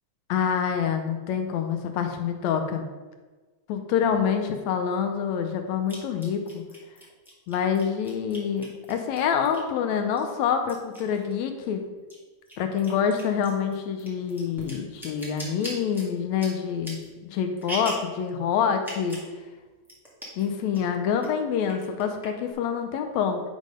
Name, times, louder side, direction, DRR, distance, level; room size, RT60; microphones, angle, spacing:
voice 1, 0.3-2.8 3.7-6.6 7.5-11.8 12.6-17.0 17.3-19.2 20.4-23.4, left 7 dB, 75° left, 6 dB, 1.8 m, -26 dB
sound 1, 4.1-4.2 5.9-9.8 10.2-11.7 12.0-18.1 18.8-19.3 19.6-19.7 19.8-20.4 20.7-21.3 21.6-22.5, equal, ahead, 0.6 m, -40 dB
9.1 x 3.7 x 5.1 m, 1.3 s
omnidirectional pair, 3.4 m